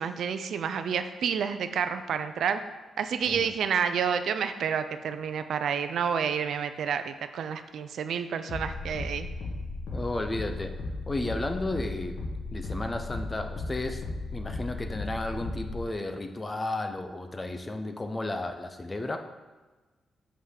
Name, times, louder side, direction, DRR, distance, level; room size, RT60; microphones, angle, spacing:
voice 1, 0.0-2.6 3.0-9.3, right 7 dB, 70° right, 9 dB, 0.5 m, -29 dB
sound 1, 8.5-15.9, left 2 dB, 80° left, 1.7 m, -36 dB
voice 2, 9.9-10.7 11.1-12.2 12.5-14.0 14.3-19.2, left 2 dB, 20° left, 6 dB, 0.6 m, -33 dB
5.7 x 5.0 x 6.4 m, 1.2 s
wide cardioid pair, 150°, 0 cm